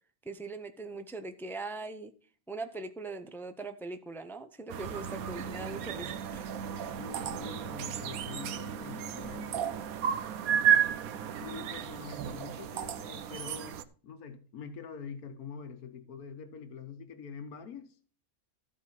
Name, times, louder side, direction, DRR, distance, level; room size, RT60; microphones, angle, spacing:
voice 1, 0.2-2.1 2.5-6.5, right 3 dB, 5° left, 0.4 m, -41 dB
sound 1, 4.7-13.8, right 9 dB, 75° right, 1.2 m, -33 dB
voice 2, 7.0-9.6 11.4-13.8 14.0-17.9, left 6 dB, 80° left, 1.6 m, -45 dB
14.0 x 4.8 x 5.8 m
omnidirectional pair, 1.6 m